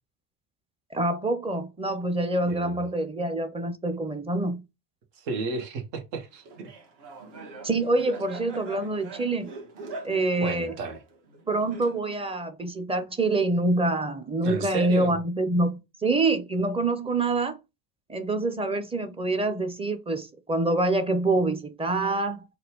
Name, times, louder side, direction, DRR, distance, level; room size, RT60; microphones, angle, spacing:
voice 1, 0.9-4.6 7.6-9.5 10.0-10.7 11.5-17.6 18.1-22.4, right 2 dB, 10° right, 0.6 m, -26 dB
voice 2, 2.4-2.8 5.1-6.7 10.4-11.0 14.4-15.1, right 4 dB, 75° right, 1.2 m, -33 dB
Laughter, 6.5-12.3, right 3 dB, 55° right, 1.3 m, -43 dB
4.1 x 2.3 x 2.9 m
hypercardioid pair, 75°, 49 cm